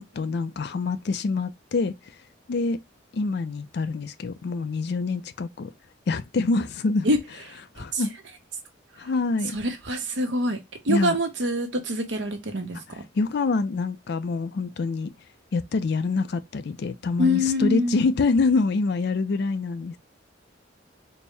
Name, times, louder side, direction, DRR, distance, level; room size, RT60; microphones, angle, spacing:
voice 1, 0.0-1.9 2.5-2.8 3.1-5.7 6.1-7.1 7.8-8.2 9.0-9.6 10.9-11.2 13.2-15.1 15.5-20.0, left 3 dB, 60° left, 0.4 m, -26 dB
voice 2, 7.5-8.0 9.5-10.6 10.8-12.8 17.2-18.0, left 1 dB, 70° right, 1.0 m, -25 dB
4.3 x 2.1 x 3.3 m
head